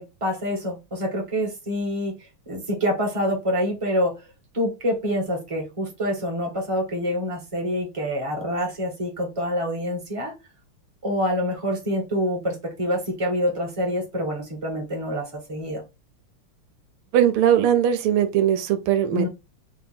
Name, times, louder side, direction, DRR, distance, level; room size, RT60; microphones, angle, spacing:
voice 1, 0.0-4.3 4.5-10.3 11.0-15.8 19.1-19.3, equal, 15° right, 1.4 m, -26 dB
voice 2, 17.1-19.3, right 10 dB, 85° right, 1.5 m, -20 dB
4.0 x 2.8 x 4.2 m
omnidirectional pair, 2.3 m